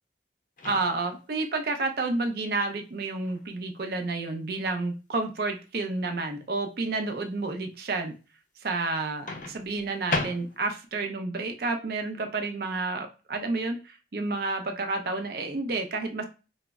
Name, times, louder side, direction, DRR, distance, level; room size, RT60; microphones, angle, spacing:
Microwave oven, 0.6-1.3 3.2-3.5 9.3-10.9, left 3 dB, 45° left, 0.5 m, -34 dB
voice 1, 0.6-8.1 8.6-16.2, right 3 dB, 55° right, 5 dB, 0.4 m, -30 dB
2.0 x 2.0 x 3.4 m, 0.32 s
head